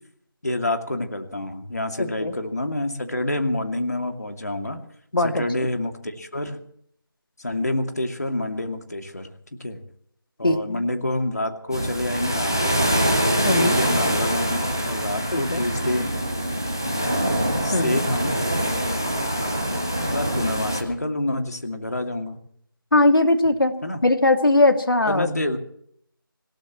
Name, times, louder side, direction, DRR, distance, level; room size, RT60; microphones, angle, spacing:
voice 1, 0.4-4.8 5.2-6.6 7.4-9.3 9.6-9.8 10.4-12.8 13.5-16.1 17.6-18.3 20.1-22.4 23.8-24.0 25.1-25.6, left 1 dB, 45° left, 5 dB, 2.6 m, -27 dB
voice 2, 2.0-2.3 5.1-5.4 10.4-10.8 13.4-13.8 15.3-15.6 17.7-18.0 22.9-23.7 24.0-25.3, left 2 dB, 70° left, 5 dB, 2.5 m, -20 dB
sound 1, 11.7-20.8, equal, 10° left, 0.8 m, -24 dB
26.5 x 17.0 x 3.1 m, 0.67 s
figure-of-eight pair, 180°, 12 cm